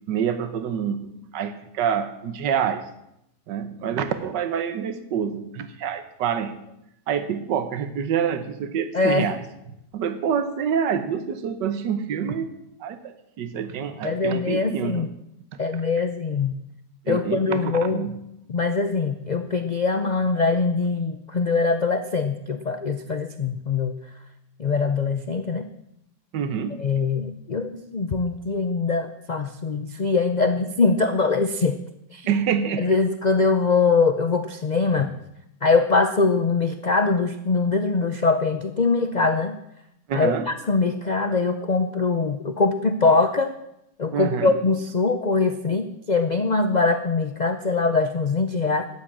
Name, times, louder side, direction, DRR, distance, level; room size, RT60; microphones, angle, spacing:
voice 1, 0.1-1.1 1.3-2.9 3.5-6.6 7.1-9.4 9.9-12.5 12.8-15.1 15.5-15.6 17.1-18.2 26.3-26.8 32.3-32.9 40.1-40.5 44.1-44.6, right 8 dB, 85° right, 11 dB, 1.6 m, -27 dB
voice 2, 8.9-9.3 14.0-15.1 15.6-16.6 17.1-18.1 18.5-24.0 24.6-25.7 26.8-31.8 32.1-32.3 32.8-35.1 35.6-39.6 40.1-43.6 44.0-48.9, left 4 dB, 90° left, 8 dB, 0.3 m, -22 dB
12.5 x 9.5 x 7.4 m, 0.82 s
omnidirectional pair, 1.8 m